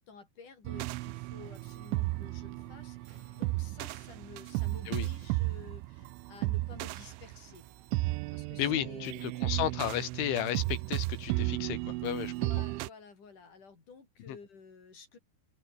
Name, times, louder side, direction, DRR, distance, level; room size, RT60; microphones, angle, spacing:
voice 1, 0.0-7.6 8.3-9.2 12.1-15.2, left 5 dB, 40° left, 6.5 m, -52 dB
sound 1, 0.7-12.9, right 20 dB, 85° right, 3.1 m, -34 dB
sound 2, 1.3-8.0, right 4 dB, 65° right, 10.0 m, -61 dB
voice 2, 8.6-12.3 14.3-14.4, left 11 dB, 80° left, 4.5 m, -33 dB
open air
omnidirectional pair, 5.5 m